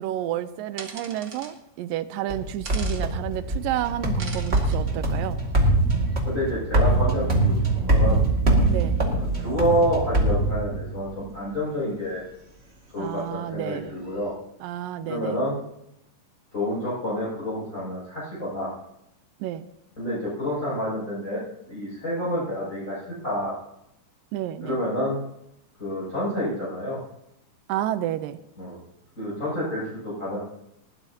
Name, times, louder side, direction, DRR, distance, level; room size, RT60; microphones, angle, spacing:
voice 1, 0.0-5.4 8.7-9.2 13.0-14.0 14.6-15.4 19.4-19.7 24.3-24.8 27.7-28.4, right 12 dB, 90° right, 12 dB, 2.4 m, -30 dB
sound 1, 0.8-1.5 2.6-3.0 4.2-4.8, right 4 dB, 40° right, 1.7 m, -39 dB
sound 2, 2.3-11.1, right 2 dB, 25° right, 1.7 m, -23 dB
voice 2, 6.2-8.3 9.1-12.2 12.9-14.3 15.0-15.6 16.5-18.7 20.0-21.4 21.7-23.5 24.6-25.2 25.8-27.0 28.6-28.8 29.2-30.4, equal, 20° left, -8 dB, 7.1 m, -28 dB
20.0 x 15.5 x 2.9 m, 0.83 s
omnidirectional pair, 3.9 m